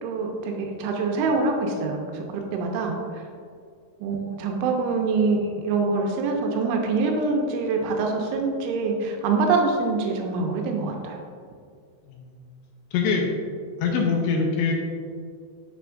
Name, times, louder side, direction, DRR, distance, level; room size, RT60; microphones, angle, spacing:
voice 1, 0.0-2.3 2.5-3.2 4.0-11.2, right 4 dB, 85° right, 2 dB, 3.0 m, -25 dB
voice 2, 12.1-12.5 12.9-13.2 13.8-14.7, left 5 dB, 85° left, 1 dB, 2.8 m, -24 dB
7.0 x 6.8 x 2.4 m, 2.2 s
omnidirectional pair, 5.5 m